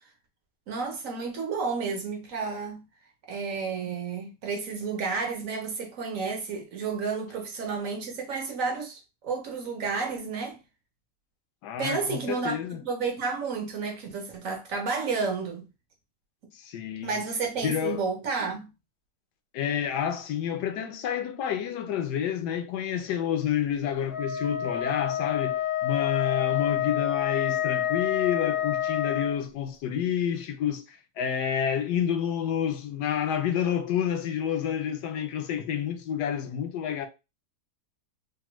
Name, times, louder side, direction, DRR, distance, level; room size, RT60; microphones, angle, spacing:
voice 1, 0.7-2.8 3.3-10.6 11.8-15.7 17.0-18.7, right 4 dB, 65° right, 0.9 m, -31 dB
voice 2, 11.6-12.8 16.5-17.3 17.6-18.0 19.5-37.1, left 9 dB, 80° left, 1.1 m, -29 dB
Wind instrument woodwind instrument, 24.1-29.4, left 11 dB, 60° left, 0.7 m, -28 dB
3.4 x 2.1 x 3.0 m
omnidirectional pair, 1.8 m